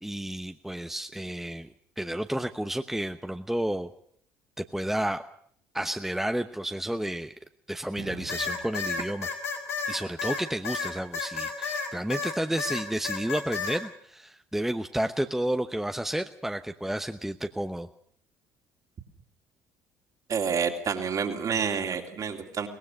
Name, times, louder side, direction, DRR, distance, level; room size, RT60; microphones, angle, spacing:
voice 1, 0.0-3.9 4.6-5.2 5.7-7.3 7.7-9.3 9.9-17.9, right 1 dB, 5° right, 7 dB, 1.0 m, -31 dB
sound 1, 8.0-9.0, right 11 dB, 65° right, 5.5 m, -45 dB
sound 2, 8.3-12.3 12.6-13.8, left 5 dB, 85° left, 3.6 m, -31 dB
voice 2, 20.3-22.7, right 6 dB, 45° right, 3 dB, 3.2 m, -28 dB
23.0 x 19.0 x 6.5 m, 0.63 s
hypercardioid pair, 55°, 8 cm